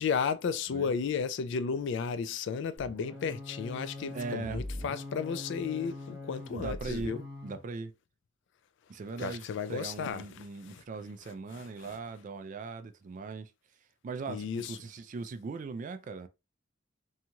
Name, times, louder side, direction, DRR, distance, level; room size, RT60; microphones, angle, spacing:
voice 1, 0.0-7.2 9.2-10.8 11.5-12.0 14.3-14.8, left 6 dB, 65° left, 0.3 m, -34 dB
sound 1, 2.8-7.6, left 2 dB, 20° right, 0.9 m, -42 dB
voice 2, 4.1-4.6 6.5-7.9 8.9-13.5 14.0-16.3, right 4 dB, 40° right, 0.3 m, -39 dB
2.9 x 2.7 x 2.3 m
head